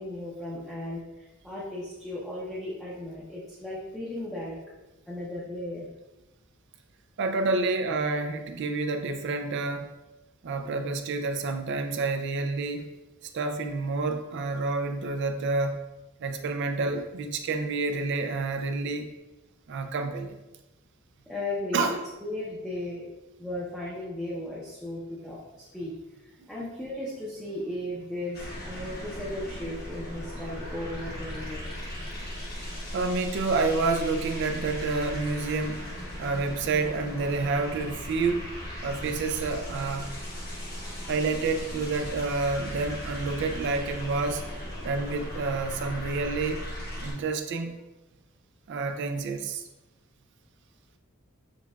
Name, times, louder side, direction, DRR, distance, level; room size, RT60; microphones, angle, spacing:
voice 1, 0.0-4.6 5.1-5.9 21.3-23.0 23.4-26.0 26.5-32.2 40.8-41.1, left 1 dB, ahead, -8 dB, 0.6 m, -36 dB
voice 2, 7.2-9.9 10.4-12.9 13.3-15.8 16.2-19.1 19.7-20.3 21.7-22.0 26.4-26.5 32.9-35.8 36.2-38.5 38.8-40.1 41.1-44.4 44.8-46.6 47.0-47.7 48.7-49.7, right 3 dB, 55° right, 6 dB, 0.4 m, -29 dB
sound 1, 28.3-47.1, equal, 45° left, 1.1 m, -37 dB
6.1 x 2.3 x 2.3 m, 1.0 s
head